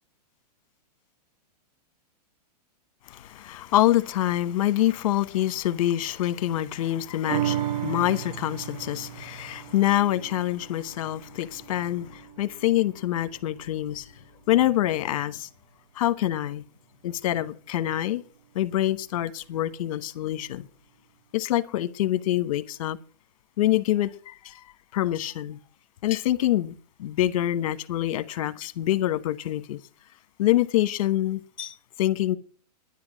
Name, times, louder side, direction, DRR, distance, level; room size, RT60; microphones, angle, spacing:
voice 1, 3.1-14.1 14.5-15.5 15.9-16.6 17.0-18.2 18.5-20.7 21.3-23.0 23.6-24.6 24.9-25.6 26.0-29.8 30.4-32.4, left 13 dB, 55° left, 1.1 m, -26 dB
sound 1, 7.3-14.0 14.4-14.5, right 12 dB, 75° right, 0.6 m, -35 dB
10.5 x 10.5 x 6.3 m
hypercardioid pair, 150°, 21 cm